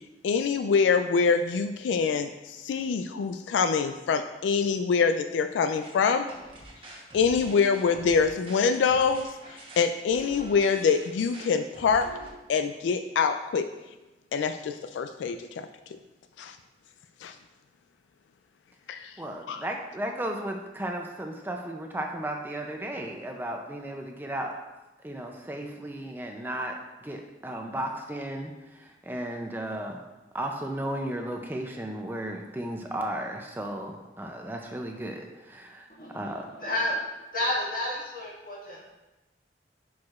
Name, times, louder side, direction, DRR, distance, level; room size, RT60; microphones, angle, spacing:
voice 1, 0.2-6.3 7.1-12.1 12.5-13.7 14.3-15.7 16.4-16.6 17.2-17.3 18.9-19.1 19.5-19.6, left 5 dB, 90° left, 9 dB, 0.3 m, -25 dB
sound 1, 5.7-12.3, right 1 dB, 30° right, 1.0 m, -46 dB
voice 2, 19.2-24.6 25.0-26.7 27.0-30.0 30.3-35.9 36.1-36.5, right 1 dB, 10° right, 2 dB, 0.4 m, -34 dB
voice 3, 36.0-37.0 37.3-38.8, left 1 dB, 50° left, -5 dB, 1.7 m, -31 dB
10.5 x 4.7 x 2.4 m, 1.1 s
head